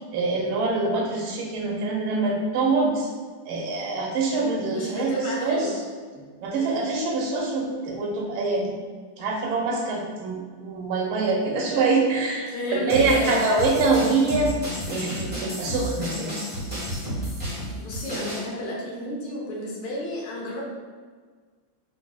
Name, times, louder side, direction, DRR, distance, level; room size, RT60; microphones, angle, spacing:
voice 1, 0.1-3.1 3.4-5.6 6.1-8.8 9.2-14.5 14.9-16.4, right 3 dB, 90° right, -1 dB, 1.6 m, -25 dB
voice 2, 4.7-5.8 6.6-6.9 12.5-13.6 17.8-20.6, left 1 dB, 85° left, -3 dB, 1.6 m, -31 dB
sound 1, 12.9-18.4, equal, 5° right, 0.9 m, -31 dB
4.8 x 2.7 x 2.3 m, 1.5 s
omnidirectional pair, 2.3 m